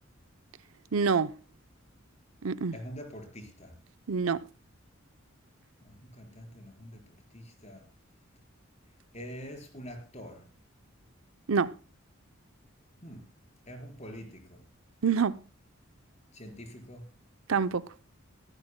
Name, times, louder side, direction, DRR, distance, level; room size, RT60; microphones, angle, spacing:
voice 1, 0.9-1.3 2.4-2.8 4.1-4.5 11.5-11.8 15.0-15.4 17.5-17.9, right 5 dB, 90° right, 0.7 m, -26 dB
voice 2, 2.7-3.7 5.8-7.0 7.3-7.8 9.1-10.5 13.0-13.3 13.7-14.6 16.3-17.1, equal, 35° left, 4.5 m, -45 dB
22.0 x 14.5 x 2.2 m
head